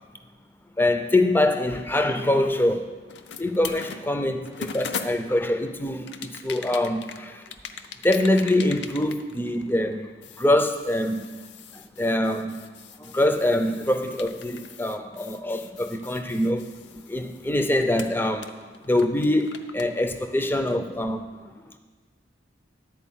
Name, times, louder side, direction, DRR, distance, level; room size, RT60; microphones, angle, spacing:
voice 1, 0.8-2.9 3.4-7.4 8.0-10.1 10.4-11.3 11.7-12.6 13.0-18.5 18.8-21.2, left 1 dB, 10° left, 0.5 m, -24 dB
sound 1, 3.1-5.5 6.1-9.9 10.2-17.6 18.0-19.9, left 6 dB, 65° left, 0.5 m, -40 dB
11.0 x 4.5 x 7.3 m
head